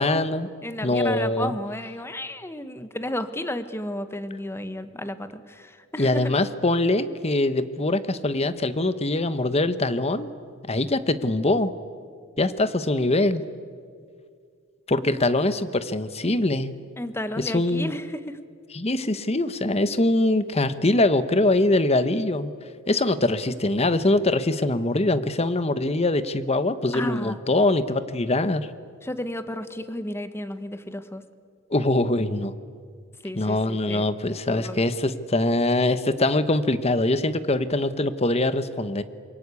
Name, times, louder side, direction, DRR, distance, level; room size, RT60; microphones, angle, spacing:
voice 1, 0.0-0.5 0.8-1.5 6.0-10.3 10.7-11.7 12.4-13.4 14.9-16.7 17.4-17.9 18.7-22.5 22.9-28.7 31.7-32.5 33.4-39.0, left 2 dB, 35° left, 13 dB, 1.1 m, -23 dB
voice 2, 0.6-6.4 17.0-18.4 26.9-27.4 29.0-31.2 33.2-34.1 34.5-34.8, left 1 dB, 15° left, 10 dB, 1.3 m, -32 dB
27.0 x 23.5 x 8.5 m, 2.1 s
head